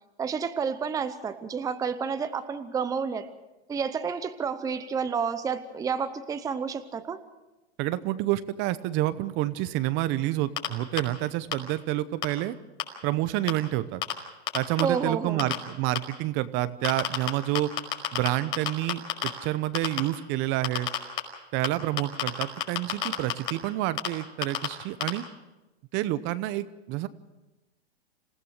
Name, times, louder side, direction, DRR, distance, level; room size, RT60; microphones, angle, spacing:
voice 1, 0.2-3.3 3.7-7.2 14.8-15.5, right 6 dB, 10° right, 10 dB, 0.8 m, -30 dB
voice 2, 7.8-12.5 13.0-14.0 14.5-17.7 18.1-20.9 21.5-25.2 25.9-27.1, right 15 dB, 35° right, 14 dB, 0.9 m, -28 dB
sound 1, 10.6-10.7 11.0-11.1 11.5-11.6 12.2-12.3 12.8-12.9 13.5-13.6 14.0-14.1 14.5-14.8 15.4-15.5 16.0-16.1 16.8-17.3 17.5-18.3 18.5-19.3 19.7-20.0 20.6-21.2 21.6-21.7 22.0-23.5 24.0-24.1 24.4-24.7 25.0-25.1, left 12 dB, 55° left, 5.2 m, -26 dB
27.0 x 16.5 x 6.5 m, 1.0 s
hypercardioid pair, 130°, 33 cm